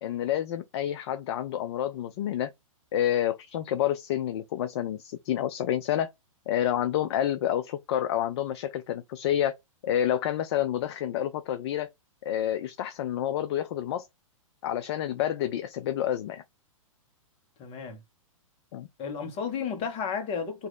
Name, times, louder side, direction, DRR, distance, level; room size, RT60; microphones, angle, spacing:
voice 1, 0.0-2.5 2.9-6.1 6.5-9.6 9.8-11.9 12.2-14.1 14.6-16.4 18.7-18.9, left 11 dB, 50° left, 0.4 m, -29 dB
voice 2, 17.6-18.0 19.0-20.7, left 6 dB, 30° left, 1.1 m, -32 dB
3.0 x 2.7 x 4.1 m
hypercardioid pair, 115°, 18 cm